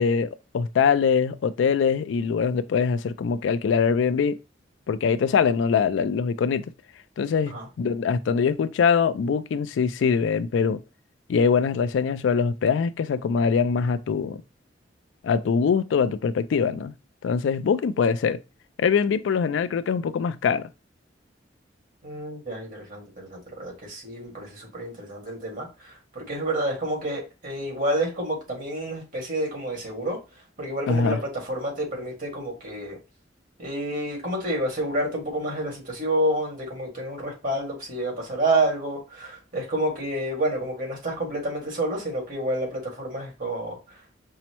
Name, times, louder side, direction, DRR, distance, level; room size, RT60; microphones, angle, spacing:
voice 1, 0.0-4.4 4.9-6.7 7.2-10.8 11.3-14.4 15.2-16.9 17.2-18.4 18.8-20.7 30.9-31.2, left 6 dB, 85° left, 0.3 m, -23 dB
voice 2, 22.0-30.2 30.6-33.0 33.6-43.8, right 1 dB, 50° right, 1.7 m, -29 dB
5.5 x 2.1 x 2.9 m
head